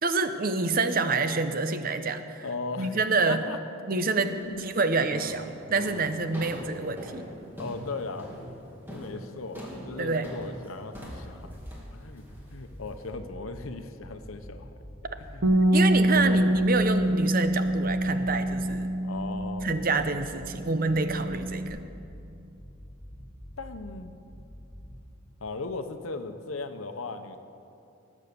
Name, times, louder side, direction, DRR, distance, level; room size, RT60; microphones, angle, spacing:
voice 1, 0.0-2.4 2.8-3.4 3.9-4.3 4.6-7.3 10.0-10.3 15.7-18.9 19.6-21.8, right 3 dB, 45° right, 9 dB, 0.7 m, -27 dB
voice 2, 2.4-3.0 3.3-3.6 4.2-4.7 7.6-8.3 8.9-11.6 11.9-12.2 12.5-14.8 15.2-15.5 15.8-16.8 19.0-19.7 23.6-24.1 25.4-27.4, left 3 dB, 85° left, 8 dB, 0.9 m, -38 dB
sound 1, 4.3-4.6 5.1-13.1, equal, 10° right, 2.3 m, -42 dB
sound 2, 11.4-12.0 12.3-13.7 14.0-15.4 15.7-17.1 17.4-18.8 19.1-20.5 20.9-22.3 22.6-24.0 24.3-25.0, equal, 25° left, 3.6 m, -45 dB
Bass guitar, 15.4-21.7, right 1 dB, 65° right, 1.1 m, -26 dB
19.0 x 7.3 x 6.8 m, 2.7 s
head